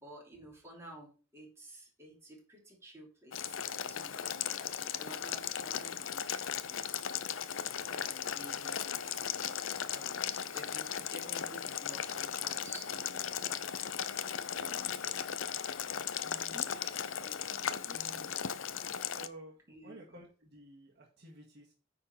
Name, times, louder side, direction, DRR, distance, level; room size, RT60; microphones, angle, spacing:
voice 1, 0.0-7.0 7.7-13.8 14.6-15.3 16.5-17.0 17.2-18.3 19.7-20.2, right 1 dB, 15° right, -2 dB, 3.3 m, -53 dB
Boiling, 3.3-19.3, left 9 dB, 80° left, 0.6 m, -37 dB
voice 2, 16.2-16.6 17.6-18.4 19.1-21.7, right 1 dB, 55° right, -1 dB, 2.0 m, -53 dB
9.5 x 4.4 x 5.9 m, 0.36 s
head